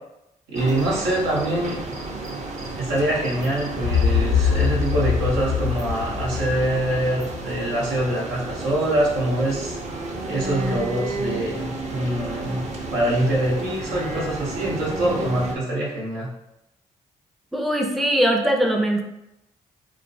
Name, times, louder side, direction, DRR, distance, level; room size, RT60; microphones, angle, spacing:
sound 1, 0.5-15.6, right 2 dB, 45° right, 0.6 m, -32 dB
voice 1, 0.5-1.8 2.8-9.8 10.2-16.3, right 1 dB, 85° right, -4 dB, 0.7 m, -24 dB
sound 2, 3.8-7.6, left 6 dB, 85° left, 0.4 m, -23 dB
voice 2, 17.5-19.0, right 1 dB, ahead, 2 dB, 0.4 m, -21 dB
3.1 x 2.0 x 2.6 m, 0.87 s
hypercardioid pair, 45°, 17 cm